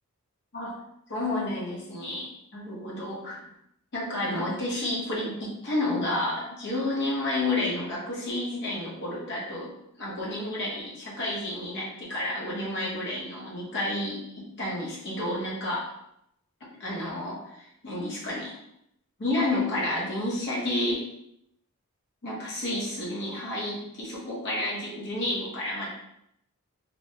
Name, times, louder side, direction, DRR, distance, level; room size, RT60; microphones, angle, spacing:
voice 1, 1.1-3.5 3.9-9.7 10.0-15.9 16.8-18.6 19.2-21.0 22.2-25.9, left 1 dB, 55° left, -5 dB, 0.8 m, -30 dB
2.9 x 2.0 x 2.7 m, 0.76 s
head